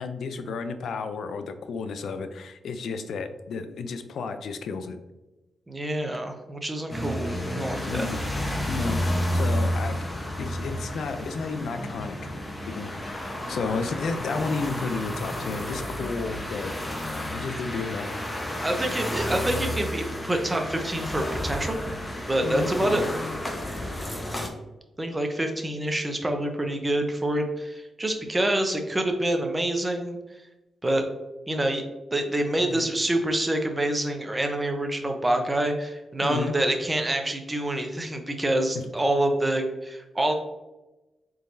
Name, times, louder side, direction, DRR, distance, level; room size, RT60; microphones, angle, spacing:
voice 1, 0.0-5.0 7.9-8.2 8.7-10.0 10.4-12.3 12.7-16.8 17.3-18.1 22.4-23.1 32.7-32.9 36.2-36.5, left 4 dB, 75° left, 9 dB, 0.4 m, -32 dB
voice 2, 5.7-8.1 18.6-21.8 22.3-23.0 25.0-30.2 30.8-31.0 31.5-31.8 32.1-40.3, right 1 dB, 20° right, 4 dB, 0.8 m, -26 dB
sound 1, 6.9-24.5, left 1 dB, 20° left, 1.0 m, -31 dB
4.1 x 3.8 x 2.6 m, 1.0 s
cardioid pair, 65°, 0 cm